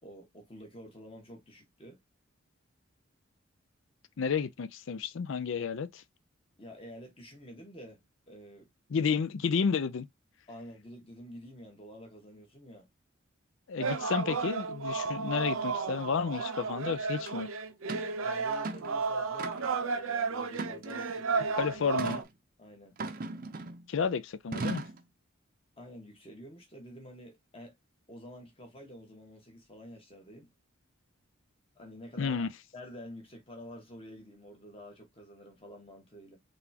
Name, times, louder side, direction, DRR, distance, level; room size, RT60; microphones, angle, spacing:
voice 1, 0.0-2.0 6.6-8.0 8.3-8.7 10.5-12.9 18.2-21.8 22.6-23.0 25.8-27.7 28.1-30.5 31.7-32.5 32.7-36.4, equal, 25° left, 1.5 m, -49 dB
voice 2, 4.2-6.0 8.9-10.1 13.7-17.5 21.5-22.2 23.9-24.8 32.2-32.5, left 6 dB, 70° left, 0.4 m, -31 dB
sound 1, 13.8-22.2, right 4 dB, 85° right, 0.7 m, -33 dB
sound 2, 17.3-17.4 17.9-18.1 18.5-18.9 19.4-19.8 20.5-21.2 22.0-22.3 23.0-23.9 24.5-25.0, right 3 dB, 45° right, 0.6 m, -37 dB
4.1 x 3.4 x 2.8 m
head